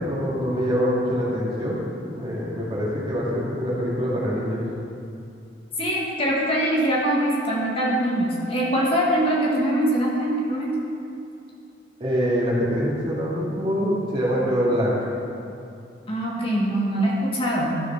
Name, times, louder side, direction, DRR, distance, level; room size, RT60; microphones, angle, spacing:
voice 1, 0.0-4.6 12.0-14.9, equal, 30° right, -6 dB, 2.2 m, -24 dB
voice 2, 5.8-10.8 16.1-17.7, right 1 dB, 30° left, -4 dB, 1.5 m, -23 dB
13.0 x 4.9 x 5.7 m, 2.6 s
head